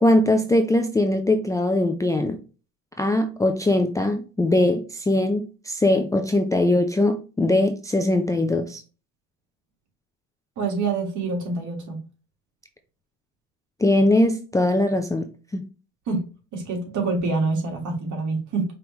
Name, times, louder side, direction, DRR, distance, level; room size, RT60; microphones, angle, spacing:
voice 1, 0.0-2.4 3.0-8.8 13.8-15.7, left 1 dB, 10° left, 5 dB, 0.4 m, -21 dB
voice 2, 10.6-12.0 16.1-16.2 16.5-18.7, right 3 dB, 55° right, 1 dB, 1.9 m, -26 dB
5.1 x 3.0 x 3.1 m, 0.35 s
supercardioid pair, 100°, 36 cm